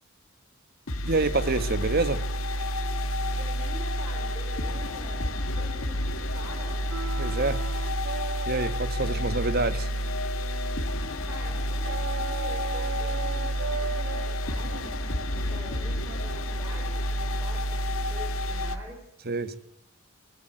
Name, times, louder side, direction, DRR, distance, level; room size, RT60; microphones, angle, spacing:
sound 1, 0.9-18.8, equal, 80° left, 2.0 m, -29 dB
voice 1, 1.1-2.2 7.2-7.6 8.5-9.9 19.2-19.6, right 3 dB, 50° right, 1.5 m, -27 dB
voice 2, 3.3-6.8 10.9-19.5, equal, 15° right, 5.7 m, -46 dB
sound 2, 6.9-11.1 11.8-16.6, right 5 dB, 80° right, 0.8 m, -38 dB
18.0 x 17.5 x 8.9 m
head